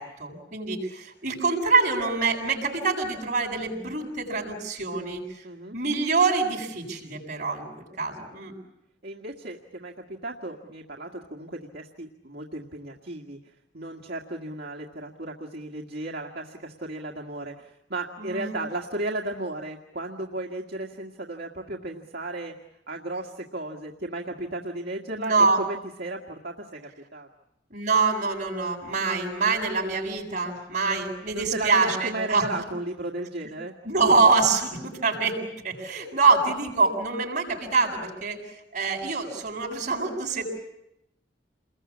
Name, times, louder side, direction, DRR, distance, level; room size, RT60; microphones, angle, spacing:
voice 1, 0.0-5.4 5.7-8.5 18.2-18.5 25.2-25.6 27.7-32.4 33.8-38.4 38.7-40.4, right 4 dB, 45° right, -1 dB, 7.8 m, -25 dB
voice 2, 5.4-5.8 9.0-22.6 22.9-27.3 31.3-33.7, right 2 dB, 60° right, 0 dB, 1.9 m, -35 dB
29.0 x 22.0 x 8.6 m, 0.88 s
head